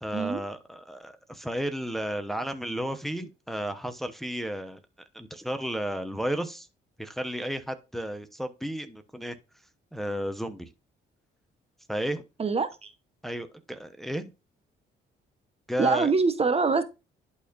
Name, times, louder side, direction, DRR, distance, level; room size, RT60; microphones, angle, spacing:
voice 1, 0.0-4.8 5.1-6.7 7.0-9.4 9.9-10.7 11.9-12.2 13.2-14.3 15.7-16.1, equal, ahead, 0.9 m, -33 dB
voice 2, 12.4-12.9 15.8-16.8, right 4 dB, 30° right, 1.0 m, -24 dB
11.0 x 4.2 x 2.6 m
cardioid pair, 90°, 20 cm